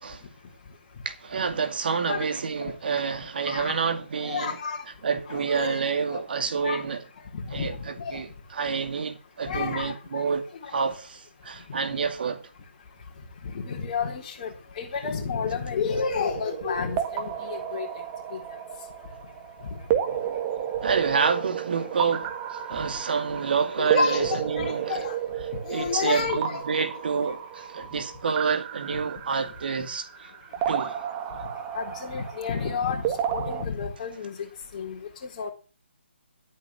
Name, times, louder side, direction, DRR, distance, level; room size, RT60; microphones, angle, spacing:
voice 1, 1.0-4.6 5.0-7.0 7.5-7.7 8.1-8.3 8.5-10.4 10.7-12.4 20.8-25.0 25.7-30.3 30.7-31.0, right 5 dB, 50° right, 2.3 m, -28 dB
voice 2, 2.1-2.4 2.6-2.7 3.4-3.8 4.2-4.8 5.3-5.8 6.1-6.2 6.6-6.8 7.3-8.2 9.5-10.2 10.6-10.7 13.4-17.9 18.3-18.4 19.7-19.8 23.8-25.1 25.6-26.6 31.7-33.0 33.3-34.5 34.7-35.5, left 5 dB, 35° left, 3.9 m, -31 dB
sound 1, 15.9-33.6, right 9 dB, 20° right, 1.6 m, -32 dB
12.0 x 9.0 x 7.2 m
figure-of-eight pair, 150°, 6 cm